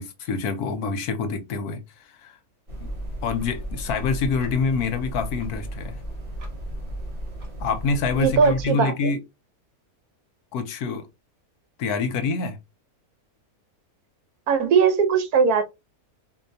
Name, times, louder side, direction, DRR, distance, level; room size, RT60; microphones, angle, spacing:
voice 1, 0.0-1.8 2.2-2.3 2.8-2.9 3.2-6.0 7.6-9.2 10.5-11.1 11.8-12.6, left 4 dB, 80° left, 1.3 m, -26 dB
sound 1, 2.7-8.6, right 1 dB, 40° right, 1.2 m, -34 dB
voice 2, 8.1-9.1 14.5-15.6, right 6 dB, 75° right, 1.3 m, -20 dB
4.3 x 2.7 x 2.7 m
omnidirectional pair, 1.6 m